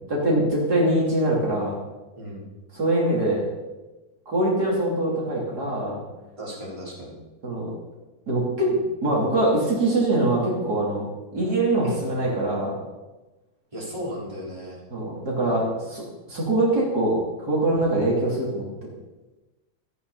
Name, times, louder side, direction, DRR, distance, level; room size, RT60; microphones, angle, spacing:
voice 1, 0.1-1.8 2.7-3.4 4.3-6.0 7.4-7.7 8.3-8.7 9.0-11.0 11.3-12.7 14.9-18.6, right 1 dB, 65° right, -4 dB, 3.7 m, -23 dB
voice 2, 2.2-2.5 6.4-7.1 11.8-12.0 13.7-14.8, equal, 15° right, -6 dB, 4.4 m, -35 dB
15.5 x 13.5 x 4.2 m, 1.1 s
omnidirectional pair, 1.9 m